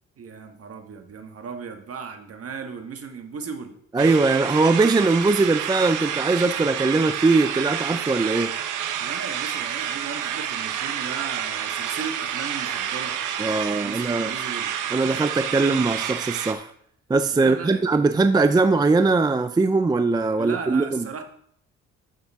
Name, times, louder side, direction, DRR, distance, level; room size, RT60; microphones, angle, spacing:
voice 1, 0.2-3.7 8.9-13.1 13.7-14.7 17.3-17.9 20.4-21.2, right 5 dB, 50° right, 5 dB, 1.5 m, -36 dB
voice 2, 3.9-8.5 13.4-14.3 14.9-16.7 17.1-21.1, right 3 dB, 15° right, 10 dB, 0.4 m, -21 dB
sound 1, 4.0-16.5, right 9 dB, 85° right, 0.9 m, -29 dB
10.5 x 7.1 x 3.6 m, 0.67 s
cardioid pair, 90°, 30 cm